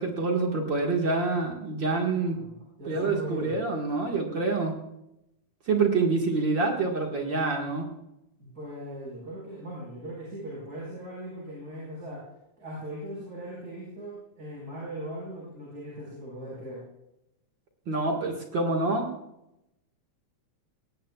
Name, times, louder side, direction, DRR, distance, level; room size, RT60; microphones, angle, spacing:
voice 1, 0.0-2.4 2.9-4.7 5.7-7.9 17.9-19.1, right 3 dB, 45° right, 1 dB, 2.0 m, -26 dB
voice 2, 2.2-3.5 8.4-12.2 12.6-16.8, equal, 30° right, -5 dB, 4.9 m, -39 dB
19.0 x 18.0 x 2.3 m, 0.86 s
omnidirectional pair, 3.5 m